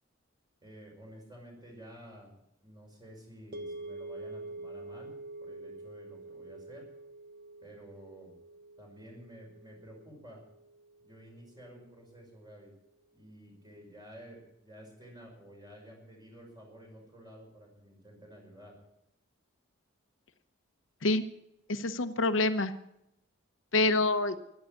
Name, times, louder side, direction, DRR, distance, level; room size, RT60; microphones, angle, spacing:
voice 1, 0.6-6.9 7.6-8.3 8.8-10.4 11.0-12.7 13.1-18.8, equal, 20° right, 0 dB, 5.8 m, -52 dB
sound 1, 3.5-11.8, right 2 dB, 50° right, 1.5 m, -46 dB
voice 2, 21.7-22.7 23.7-24.4, left 2 dB, 75° left, 9 dB, 0.9 m, -26 dB
14.0 x 11.5 x 8.4 m, 0.82 s
head